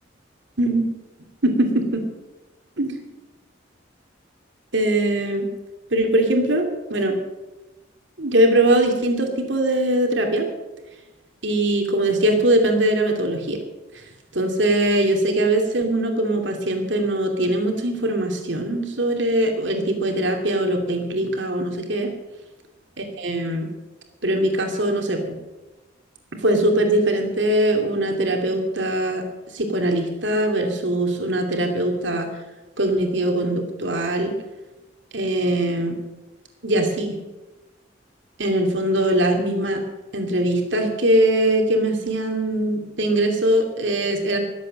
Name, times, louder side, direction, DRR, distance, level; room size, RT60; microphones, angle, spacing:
voice 1, 1.4-2.0 2.8-3.0 4.7-5.5 5.9-7.2 8.2-10.5 11.4-13.6 14.3-22.1 23.0-23.7 24.2-25.2 26.4-29.2 29.5-32.3 32.8-34.3 35.1-36.0 36.6-37.2 38.4-39.8 40.1-44.4, right 1 dB, 70° right, 3 dB, 2.6 m, -21 dB
21.0 x 8.2 x 6.5 m, 1.1 s
head